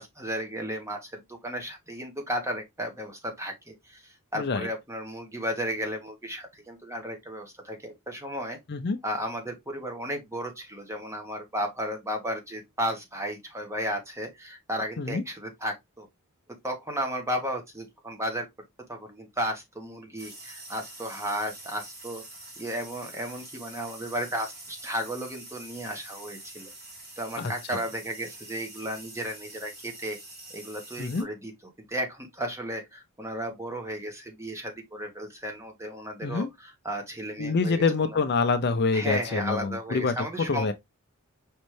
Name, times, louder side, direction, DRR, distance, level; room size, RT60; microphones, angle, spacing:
voice 1, 0.0-8.6 9.0-16.1 16.6-18.5 18.9-22.2 22.6-26.7 27.2-30.2 30.5-31.5 31.9-37.8 38.9-40.7, equal, 15° right, 1.1 m, -34 dB
voice 2, 4.3-4.7 8.7-9.0 15.0-15.2 27.4-27.5 31.0-31.3 36.2-36.5 37.4-40.1 40.5-40.7, left 4 dB, 50° left, 0.6 m, -26 dB
sound 1, 20.2-31.2, right 2 dB, 50° right, 2.4 m, -45 dB
5.2 x 3.2 x 3.1 m
head